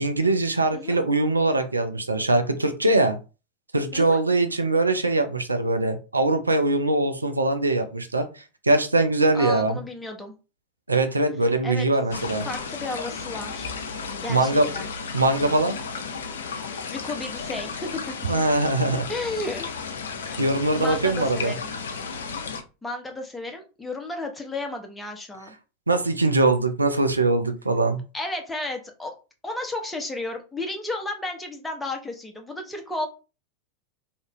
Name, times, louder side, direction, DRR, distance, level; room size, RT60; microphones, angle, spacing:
voice 1, 0.0-3.2 3.7-9.8 10.9-12.5 14.3-14.7 15.1-15.8 18.3-19.1 20.4-21.5 25.9-28.0, right 2 dB, 85° right, 7 dB, 0.4 m, -22 dB
voice 2, 9.3-10.3 11.6-11.9 12.4-13.7 14.2-14.9 16.9-18.0 19.1-19.7 20.2-20.4 20.7-21.7 22.8-25.5 28.1-29.1 29.4-33.1, left 2 dB, 10° left, 3 dB, 0.8 m, -33 dB
sound 1, 12.1-22.6, left 5 dB, 70° left, 0.4 m, -34 dB
2.7 x 2.4 x 3.0 m, 0.32 s
figure-of-eight pair, 85°, 0 cm